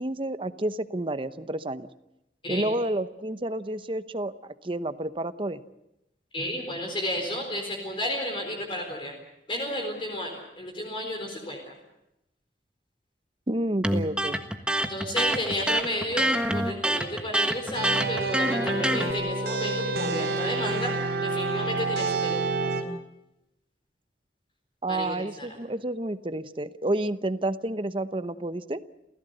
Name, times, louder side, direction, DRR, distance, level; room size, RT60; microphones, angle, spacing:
voice 1, 0.0-1.9 2.5-5.6 13.5-14.4 24.8-28.8, right 1 dB, 30° right, 12 dB, 0.9 m, -30 dB
voice 2, 6.3-9.1 9.5-11.7 14.9-20.9 21.2-22.7 24.9-25.5, left 1 dB, 30° left, 2 dB, 4.2 m, -32 dB
Electric guitar, 13.8-19.1, right 1 dB, 5° right, 1.5 m, -26 dB
sound 1, 17.7-22.8, right 3 dB, 70° right, 4.1 m, -28 dB
29.5 x 16.0 x 8.0 m, 0.88 s
head